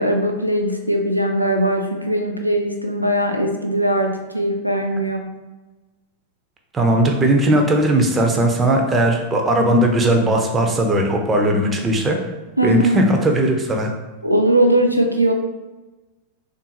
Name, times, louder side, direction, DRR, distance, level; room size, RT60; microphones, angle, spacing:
voice 1, 0.0-5.3 12.6-13.1 14.2-15.3, right 1 dB, 90° right, 3 dB, 0.4 m, -20 dB
voice 2, 6.7-12.2 12.6-13.9, right 1 dB, 20° right, 2 dB, 0.6 m, -18 dB
3.6 x 2.5 x 2.8 m, 1.2 s
figure-of-eight pair, 90°, 0 cm